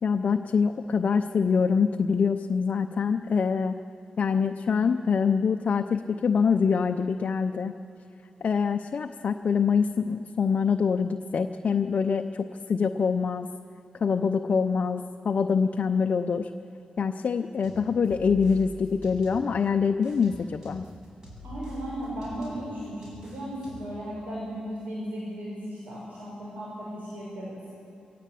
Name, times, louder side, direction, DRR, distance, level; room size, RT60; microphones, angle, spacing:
voice 1, 0.0-3.8 4.2-7.7 8.4-13.5 14.0-16.5 17.0-20.8, left 6 dB, 55° left, 5 dB, 0.7 m, -25 dB
sound 1, 17.6-19.7 20.0-24.0, left 2 dB, 20° right, 7.2 m, -45 dB
voice 2, 21.4-27.6, equal, 75° right, -6 dB, 6.8 m, -36 dB
22.5 x 18.0 x 8.5 m, 2.8 s
wide cardioid pair, 110°, 3 cm